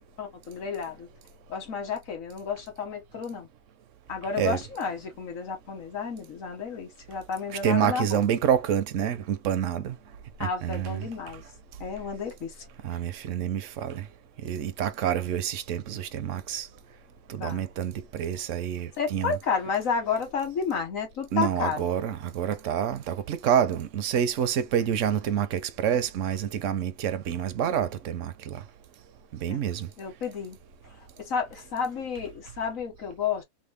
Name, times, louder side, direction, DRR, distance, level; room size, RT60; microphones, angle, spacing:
voice 1, 0.2-1.1 1.5-3.5 4.1-8.2 10.4-11.4 11.8-12.5 17.4-17.6 19.0-21.9 29.5-29.6 30.0-30.6 31.2-33.4, left 6 dB, 90° left, 1.7 m, -31 dB
voice 2, 7.6-10.0 10.4-11.1 12.8-14.0 14.4-16.7 17.3-19.4 21.3-28.6 29.4-29.9, right 9 dB, 75° right, 1.0 m, -27 dB
3.6 x 2.0 x 3.2 m
omnidirectional pair, 1.4 m